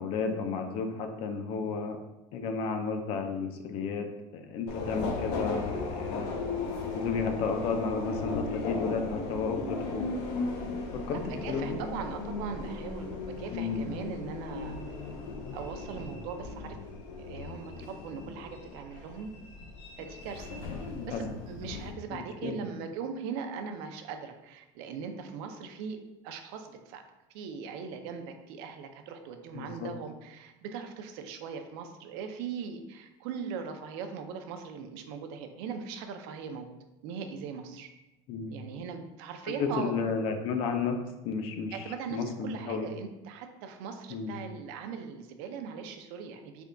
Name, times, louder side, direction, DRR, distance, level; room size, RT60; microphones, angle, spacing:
voice 1, 0.0-2.0 2.3-4.1 4.3-6.4 6.9-10.1 10.9-11.2 11.5-11.8 13.5-13.9 21.0-21.4 22.1-22.6 29.5-29.9 38.3-38.6 39.5-41.0 41.2-42.9 44.1-44.4, left 5 dB, 40° left, 6 dB, 0.4 m, -32 dB
Subway metro underground, 4.7-21.9, left 3 dB, 85° left, 0.6 m, -37 dB
voice 2, 11.1-14.8 15.5-16.8 17.2-19.3 20.0-20.6 21.1-26.0 26.2-27.0 27.3-36.7 37.0-37.9 38.5-39.9 41.7-46.6, right 6 dB, 70° right, 6 dB, 0.4 m, -40 dB
3.4 x 2.2 x 3.7 m, 0.99 s
cardioid pair, 170°, 14 cm